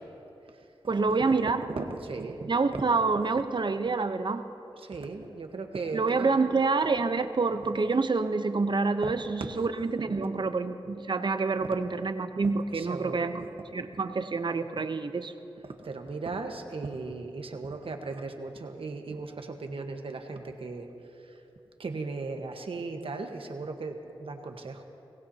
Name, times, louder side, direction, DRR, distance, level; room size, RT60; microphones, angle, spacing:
voice 1, 0.9-1.7 2.5-4.4 5.9-13.5 13.7-15.3, right 4 dB, 50° right, 9 dB, 0.8 m, -27 dB
voice 2, 1.7-2.8 4.8-6.4 10.1-10.3 12.7-13.4 15.6-20.9 21.8-24.8, right 3 dB, 70° right, 5 dB, 1.3 m, -37 dB
22.0 x 17.0 x 2.9 m, 2.8 s
cardioid pair, 45°, 10 cm